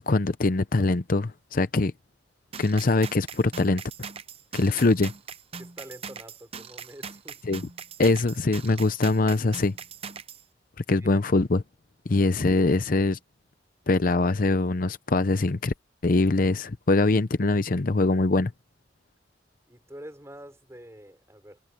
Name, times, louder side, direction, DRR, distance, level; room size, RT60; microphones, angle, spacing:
voice 1, 0.0-1.9 2.6-3.8 4.5-5.1 7.5-7.6 8.0-9.7 10.9-11.6 12.1-13.2 13.9-15.7 16.0-18.5, left 2 dB, 50° left, 0.7 m, -23 dB
sound 1, 2.5-10.4, right 6 dB, 30° right, 0.7 m, -41 dB
voice 2, 5.6-7.4 11.0-11.1 19.7-21.6, equal, 15° right, 3.9 m, -46 dB
head